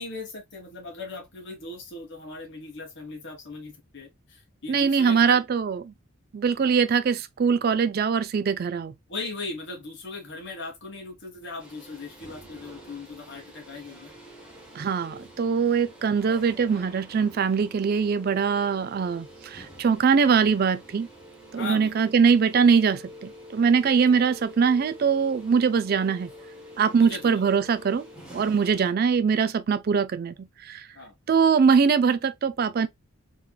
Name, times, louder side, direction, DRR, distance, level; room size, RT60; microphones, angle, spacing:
voice 1, 0.0-5.4 9.1-14.1 16.0-16.2 21.5-22.1 24.0-24.1 26.9-27.4 28.6-28.7 30.9-31.1, left 3 dB, 55° left, 1.5 m, -38 dB
voice 2, 4.7-5.8 6.3-8.9 14.8-21.1 21.5-26.3 26.8-28.0 28.3-30.9 31.3-32.9, right 6 dB, 45° right, 0.3 m, -22 dB
sound 1, 11.6-28.9, equal, 5° right, 1.1 m, -46 dB
3.8 x 3.0 x 2.3 m
head